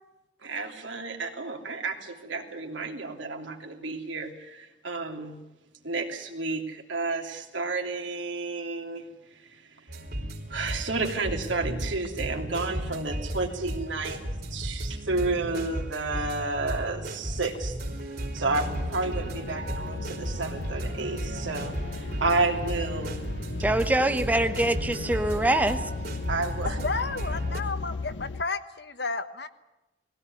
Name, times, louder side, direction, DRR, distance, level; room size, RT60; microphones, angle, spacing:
voice 1, 0.4-5.4 5.8-9.1 9.5-9.6 10.5-14.2 14.5-17.7 18.3-23.2 23.7-23.8 26.3-26.8, right 3 dB, 85° right, 3 dB, 3.0 m, -31 dB
sound 1, 9.9-27.6, right 1 dB, 55° right, 3.5 m, -34 dB
sound 2, 18.5-28.4, left 3 dB, 80° left, 0.7 m, -36 dB
voice 2, 23.6-25.9, right 1 dB, 10° right, 8 dB, 0.8 m, -24 dB
voice 3, 26.6-29.5, left 4 dB, 60° left, 10 dB, 1.2 m, -32 dB
20.0 x 17.0 x 9.7 m, 0.97 s
head